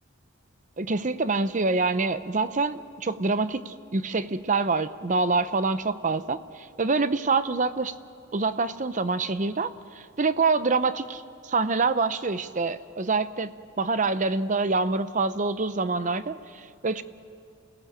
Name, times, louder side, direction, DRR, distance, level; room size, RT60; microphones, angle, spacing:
voice 1, 0.8-7.9 8.3-9.7 9.9-17.0, right 3 dB, 40° right, 13 dB, 0.7 m, -26 dB
28.0 x 18.0 x 7.4 m, 2.6 s
head